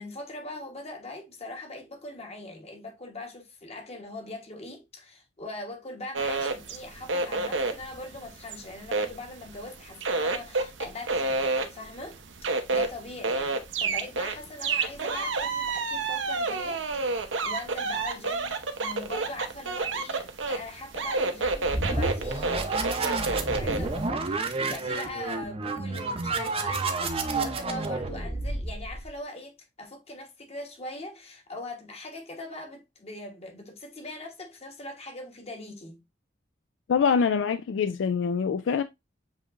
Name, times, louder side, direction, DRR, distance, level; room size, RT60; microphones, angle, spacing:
voice 1, 0.0-16.8 17.4-36.0, left 2 dB, 35° left, 1.2 m, -41 dB
sound 1, 6.1-9.7 10.0-23.9, right 3 dB, 75° right, 0.8 m, -28 dB
sound 2, 21.4-29.1, right 3 dB, 30° right, 0.7 m, -30 dB
voice 2, 36.9-38.8, left 6 dB, 70° left, 0.3 m, -24 dB
7.4 x 2.9 x 2.4 m
head